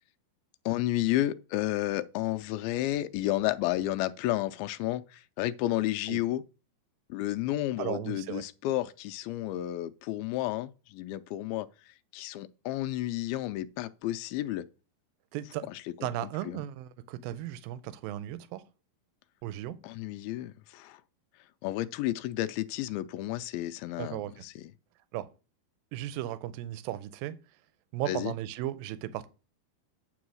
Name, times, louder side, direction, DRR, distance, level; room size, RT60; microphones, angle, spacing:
voice 1, 0.7-6.4 7.1-11.7 12.1-14.7 16.0-16.1 16.5-16.6 19.8-21.0 21.6-24.6 28.1-28.3, left 15 dB, 85° left, 2.4 m, -31 dB
voice 2, 7.8-8.4 15.3-15.7 16.0-18.6 19.4-19.8 24.0-24.4 25.1-25.3 25.9-27.4 27.9-29.3, right 13 dB, 80° right, 2.3 m, -36 dB
9.6 x 3.8 x 6.2 m
omnidirectional pair, 4.3 m